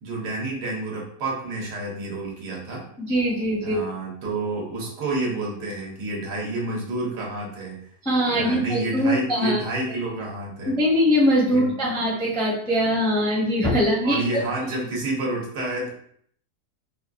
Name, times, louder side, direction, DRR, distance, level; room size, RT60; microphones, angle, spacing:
voice 1, 0.0-2.8 3.6-7.9 8.3-10.7 11.5-11.9 14.0-15.9, right 2 dB, 90° right, -2 dB, 1.6 m, -29 dB
voice 2, 3.0-3.8 8.0-9.6 9.9-10.0 10.7-14.2, equal, 5° left, -5 dB, 0.5 m, -22 dB
4.6 x 2.3 x 2.5 m, 0.65 s
omnidirectional pair, 1.7 m